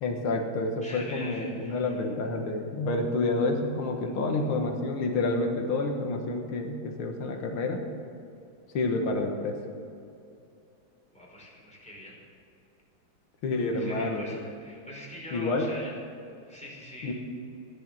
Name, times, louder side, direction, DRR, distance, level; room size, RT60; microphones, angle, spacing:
voice 1, 0.0-7.8 8.7-9.6 13.4-14.4 15.3-15.7 17.0-17.1, left 2 dB, 85° left, 3 dB, 2.3 m, -29 dB
voice 2, 0.8-1.9 11.1-12.2 13.7-15.9 16.4-17.1, left 1 dB, 5° left, -4 dB, 4.8 m, -43 dB
15.0 x 10.5 x 7.5 m, 2.6 s
omnidirectional pair, 2.3 m